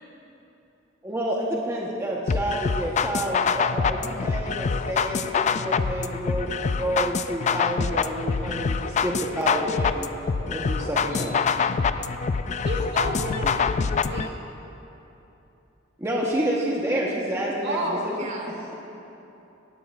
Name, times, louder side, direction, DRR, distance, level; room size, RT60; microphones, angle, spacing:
voice 1, 1.0-10.1 10.5-11.4 16.0-18.7, right 1 dB, 15° right, -4 dB, 1.2 m, -29 dB
sound 1, 2.3-14.3, left 5 dB, 35° left, 0.3 m, -25 dB
voice 2, 9.7-10.8 11.9-12.7 18.2-18.5, right 2 dB, 40° right, 0 dB, 1.7 m, -45 dB
voice 3, 12.6-13.7 14.0-14.4 17.6-18.1, right 1 dB, 60° right, -2 dB, 2.1 m, -30 dB
18.0 x 16.5 x 2.6 m, 2.9 s
head